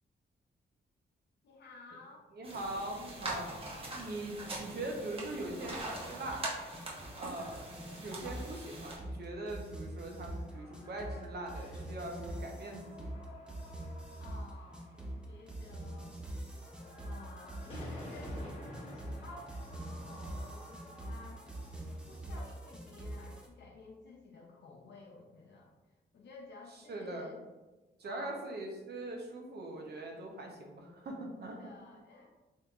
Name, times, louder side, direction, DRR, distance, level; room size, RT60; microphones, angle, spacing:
voice 1, 1.4-2.3 14.2-16.2 17.0-21.4 22.1-25.7 26.1-27.4 28.0-28.4 31.5-32.3, left 3 dB, 65° left, -2 dB, 0.6 m, -53 dB
voice 2, 2.3-6.5 7.1-13.1 26.9-27.3 28.0-31.7, right 2 dB, 60° right, 2 dB, 0.7 m, -42 dB
sound 1, 2.4-9.0, right 2 dB, 30° right, 0.9 m, -43 dB
sound 2, 5.4-22.0, left 1 dB, 30° left, 0.9 m, -52 dB
sound 3, 6.0-23.5, right 1 dB, 5° right, 0.5 m, -44 dB
3.5 x 2.8 x 2.4 m, 1.1 s
cardioid pair, 90°, 19 cm